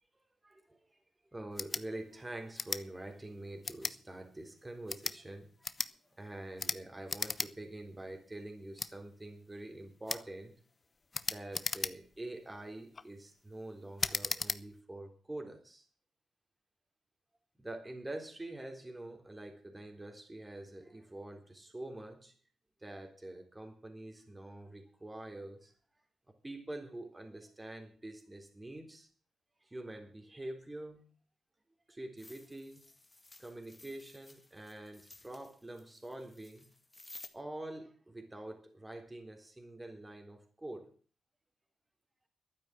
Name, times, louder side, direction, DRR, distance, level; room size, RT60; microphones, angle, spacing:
voice 1, 0.4-0.8 1.3-5.7 6.1-10.5 11.3-15.9 17.6-22.3 22.8-25.7 26.4-29.1 29.6-31.0 31.9-32.8 33.4-36.7 37.3-40.9, right 1 dB, 20° right, 4 dB, 3.6 m, -46 dB
sound 1, 1.5-1.8 2.5-2.8 3.6-4.0 4.8-5.2 5.6-5.9 6.6-6.8 7.1-7.5 7.8-7.9 8.8-8.9 10.1-10.3 11.1-12.2 12.7-13.1 14.0-14.6, left 4 dB, 40° left, 0.8 m, -36 dB
sound 2, 32.2-37.3, left 2 dB, 20° left, 1.9 m, -56 dB
12.0 x 9.3 x 7.8 m, 0.40 s
supercardioid pair, 60°, 0 cm